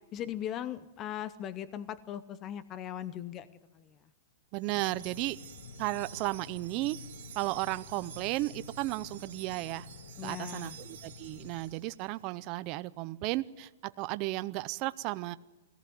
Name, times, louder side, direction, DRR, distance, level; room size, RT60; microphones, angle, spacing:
voice 1, 0.0-4.0 10.2-10.8, left 10 dB, 20° left, 15 dB, 0.8 m, -39 dB
voice 2, 4.5-5.4 5.8-7.0 7.3-9.9 10.2-13.7 14.0-15.4, right 19 dB, 30° right, 14 dB, 0.7 m, -34 dB
Wind chime, 4.6-12.1, right 11 dB, 65° right, 2.0 m, -51 dB
sound 1, 4.9-11.7, left 5 dB, 60° left, 1.5 m, -50 dB
22.5 x 18.0 x 9.5 m, 1.2 s
hypercardioid pair, 165°, 0 cm